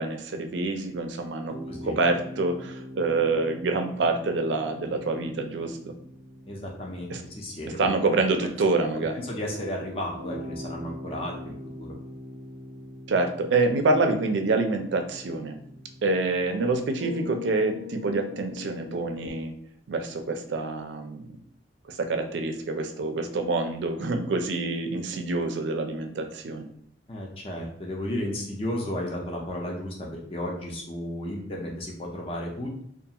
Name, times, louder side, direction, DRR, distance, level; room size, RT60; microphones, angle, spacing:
voice 1, 0.0-1.6 1.8-5.9 7.1-7.2 7.8-9.3 13.1-15.6 16.0-19.5 19.9-21.4 21.9-26.7, right 3 dB, 70° right, 5 dB, 0.4 m, -26 dB
sound 1, 1.5-19.3, left 2 dB, 80° left, 0.6 m, -43 dB
voice 2, 6.5-7.9 8.9-11.9 27.1-32.8, left 1 dB, 30° left, -1 dB, 0.4 m, -34 dB
2.4 x 2.3 x 2.8 m, 0.69 s
head